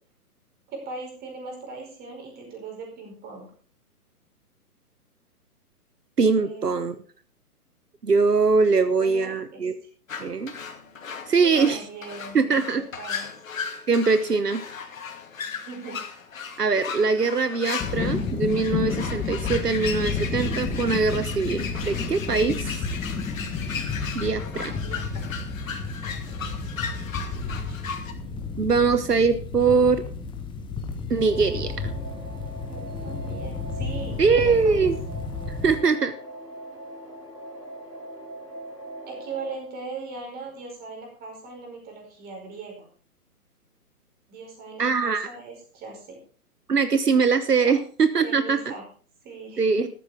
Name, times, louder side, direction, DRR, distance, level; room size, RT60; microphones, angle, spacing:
voice 1, 0.7-3.5 6.3-6.8 9.0-9.7 11.4-12.4 12.7-13.3 15.4-16.0 24.4-25.4 26.0-27.9 32.7-34.8 39.1-42.9 44.3-46.2 47.7-47.8 48.2-48.8 49.2-49.9, right 3 dB, 20° right, 1 dB, 5.0 m, -40 dB
voice 2, 6.2-6.9 8.0-9.7 10.2-10.5 11.3-11.8 12.3-12.8 13.9-14.6 16.6-22.8 24.1-24.7 28.6-30.0 31.1-31.7 34.2-35.0 35.6-36.1 44.8-45.3 46.7-48.6 49.6-49.9, right 4 dB, 80° right, 11 dB, 1.3 m, -22 dB
sound 1, 10.1-28.1, left 6 dB, 55° left, 2.4 m, -36 dB
sound 2, 17.8-35.8, left 4 dB, 10° left, 1.5 m, -31 dB
sound 3, 31.2-39.6, right 1 dB, 90° left, 4.0 m, -41 dB
14.0 x 13.0 x 3.6 m, 0.41 s
figure-of-eight pair, 125°, 46 cm